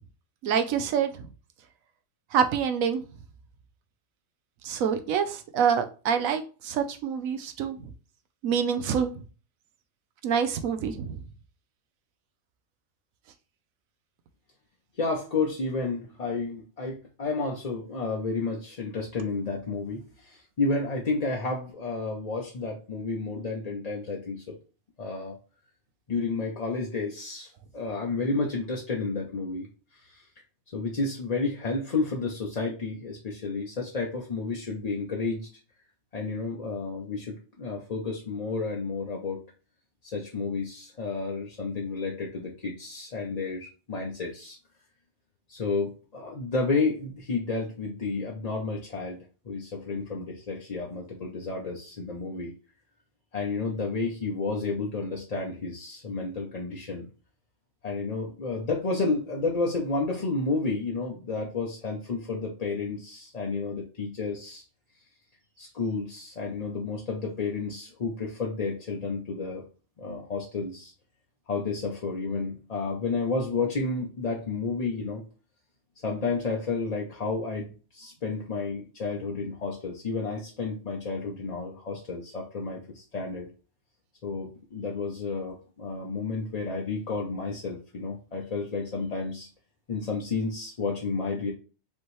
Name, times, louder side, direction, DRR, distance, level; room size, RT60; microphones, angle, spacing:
voice 1, 0.4-1.1 2.3-3.0 4.6-7.8 8.4-9.1 10.2-11.2, right 7 dB, 85° right, 8 dB, 1.0 m, -26 dB
voice 2, 14.9-24.6 25.0-25.3 26.1-30.3 30.7-35.5 36.1-39.4 40.0-44.6 45.5-52.5 53.3-57.1 57.8-64.6 65.6-69.6 70.0-70.9 71.5-75.2 76.0-83.5 84.2-89.5 89.9-91.5, left 3 dB, 40° left, -1 dB, 0.6 m, -31 dB
5.2 x 3.0 x 3.1 m, 0.36 s
omnidirectional pair, 1.4 m